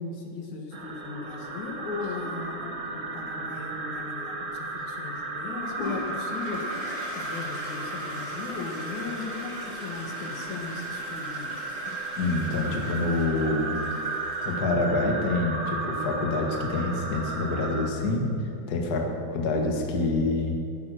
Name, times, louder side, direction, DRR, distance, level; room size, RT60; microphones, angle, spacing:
voice 1, 0.0-6.7 7.2-11.6, left 4 dB, 70° left, 1 dB, 2.9 m, -37 dB
sound 1, 0.7-17.9, right 3 dB, 45° right, 1.0 m, -34 dB
Toilet flush, 5.6-14.8, left 1 dB, 85° left, 5.7 m, -41 dB
voice 2, 12.2-13.7 14.4-18.3 18.7-20.6, left 2 dB, 40° left, 1 dB, 1.7 m, -26 dB
15.0 x 11.0 x 6.4 m, 2.5 s
omnidirectional pair, 3.6 m